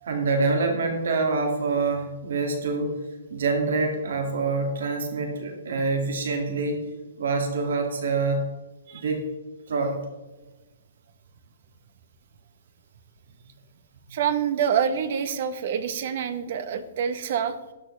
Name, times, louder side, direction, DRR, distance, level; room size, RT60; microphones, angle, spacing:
voice 1, 0.1-3.0 3.3-8.4 9.0-9.2 9.7-10.0, right 3 dB, 75° right, 3 dB, 2.2 m, -26 dB
voice 2, 14.1-17.6, right 8 dB, 45° right, 11 dB, 1.0 m, -26 dB
12.5 x 11.0 x 3.4 m, 1.1 s
hypercardioid pair, 170°, 0 cm